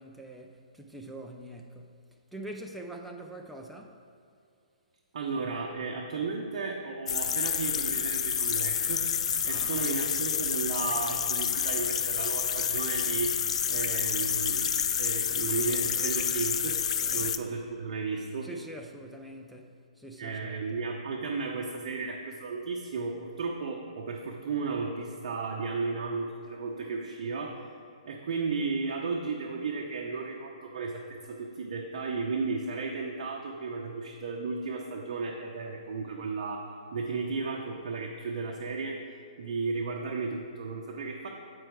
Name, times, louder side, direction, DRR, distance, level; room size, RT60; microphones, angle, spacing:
voice 1, 0.0-2.0 2.3-4.0 9.5-9.9 16.9-17.3 18.4-20.8, right 1 dB, ahead, 0 dB, 0.4 m, -44 dB
voice 2, 5.1-9.1 9.4-13.4 13.7-14.7 15.0-16.8 17.1-18.5 20.2-27.7 28.1-36.7 36.9-39.0 39.4-41.3, right 4 dB, 55° right, 0 dB, 0.8 m, -34 dB
sound 1, 7.1-17.4, left 7 dB, 60° left, 0.4 m, -29 dB
8.8 x 4.6 x 4.7 m, 2.5 s
hypercardioid pair, 150°, 4 cm